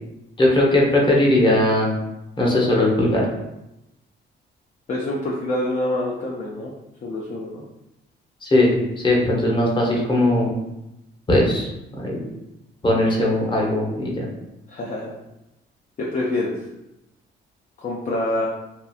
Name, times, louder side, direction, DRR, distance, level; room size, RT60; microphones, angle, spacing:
voice 1, 0.4-1.9 2.4-3.3 8.4-10.5 11.3-11.7 12.0-12.2 12.8-14.3, left 1 dB, 25° left, -3 dB, 0.9 m, -19 dB
voice 2, 4.9-6.7 7.0-7.6 14.7-15.1 16.0-16.5 17.8-18.5, left 1 dB, 40° left, -3 dB, 0.5 m, -26 dB
2.8 x 2.4 x 2.3 m, 0.90 s
cardioid pair, 90°, 20 cm